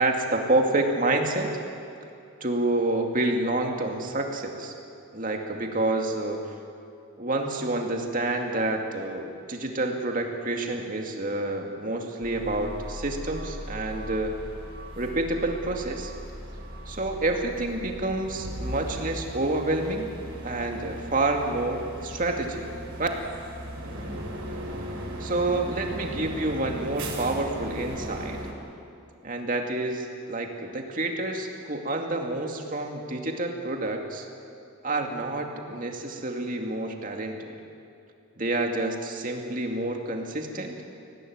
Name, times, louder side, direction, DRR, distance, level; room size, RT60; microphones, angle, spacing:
voice 1, 0.0-1.5 2.4-4.7 5.1-6.4 7.2-14.4 15.0-16.1 16.9-20.1 20.4-22.7 23.0-23.1 25.2-28.4 29.2-34.3 34.8-37.5 38.4-40.8, right 2 dB, 40° right, 2 dB, 2.4 m, -28 dB
sound 1, 12.2-28.5, right 1 dB, 85° right, 6.0 m, -38 dB
24.5 x 17.5 x 9.6 m, 2.7 s
head